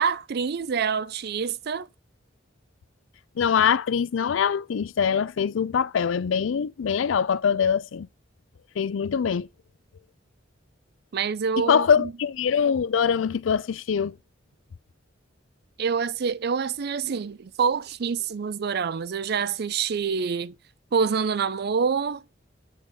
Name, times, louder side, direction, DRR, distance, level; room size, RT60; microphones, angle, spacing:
voice 1, 0.0-1.9 11.1-12.1 15.8-20.6 20.9-22.2, right 6 dB, 55° right, 0.4 m, -26 dB
voice 2, 3.4-8.1 8.8-9.5 11.6-14.1, left 7 dB, 85° left, 0.4 m, -23 dB
8.2 x 6.4 x 3.6 m
head